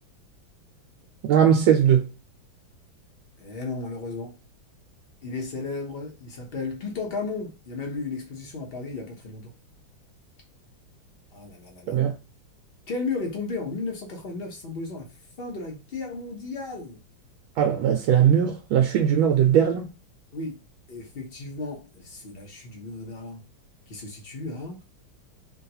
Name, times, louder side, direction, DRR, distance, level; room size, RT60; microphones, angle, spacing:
voice 1, 1.2-2.1 11.9-12.1 17.6-19.9, right 9 dB, 80° right, 1.3 m, -19 dB
voice 2, 3.4-4.4 5.2-9.5 11.3-12.0 12.9-15.1 15.4-17.0 20.3-20.6 20.9-23.5 23.9-24.8, left 3 dB, 50° left, 0.7 m, -34 dB
3.6 x 2.3 x 2.7 m
omnidirectional pair, 2.2 m